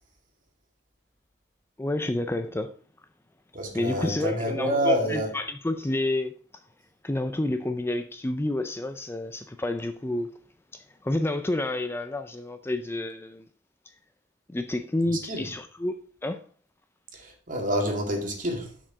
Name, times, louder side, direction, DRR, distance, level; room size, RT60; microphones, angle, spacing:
voice 1, 1.8-2.7 3.7-6.3 7.0-10.3 10.7-13.4 14.5-16.4, left 1 dB, 15° left, 0.4 m, -29 dB
voice 2, 3.5-5.3 15.1-15.5 17.1-18.7, equal, 45° right, 2.2 m, -28 dB
6.7 x 6.1 x 4.8 m
head